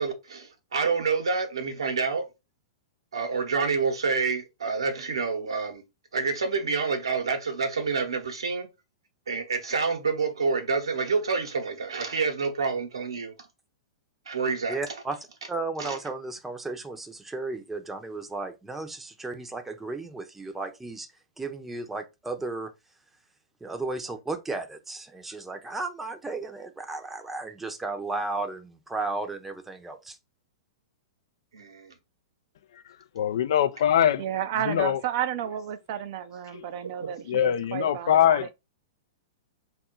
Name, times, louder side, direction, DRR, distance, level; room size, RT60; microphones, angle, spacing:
voice 1, 0.0-2.3 3.1-5.8 6.1-8.7 9.3-13.3 14.3-14.8 15.8-16.0 31.5-31.9 37.0-37.1, right 4 dB, 75° right, 0.9 m, -28 dB
voice 2, 14.7-15.2 15.5-21.1 21.4-22.7 23.6-30.2, right 3 dB, 10° right, 0.7 m, -34 dB
voice 3, 33.2-34.2 34.7-35.0 37.3-38.5, left 10 dB, 60° left, 0.4 m, -22 dB
voice 4, 34.2-38.5, right 10 dB, 50° right, 0.4 m, -32 dB
4.1 x 2.5 x 3.8 m
figure-of-eight pair, 105°, 3 cm